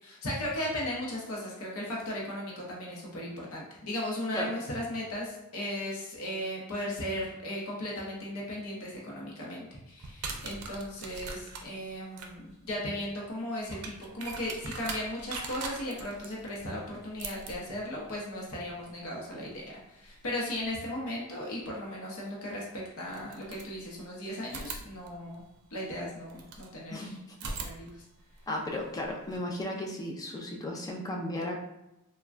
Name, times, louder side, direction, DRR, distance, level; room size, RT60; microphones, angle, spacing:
voice 1, 0.0-19.6 19.9-25.4 25.7-28.0, left 1 dB, 70° left, -3 dB, 0.7 m, -36 dB
sound 1, 10.0-20.8 22.3-22.4 23.1-24.1 24.4-26.7 27.3-29.4, right 4 dB, 80° right, 0.4 m, -43 dB
voice 2, 28.5-31.6, left 1 dB, 15° left, 0 dB, 0.4 m, -35 dB
3.2 x 2.1 x 2.4 m, 0.91 s
head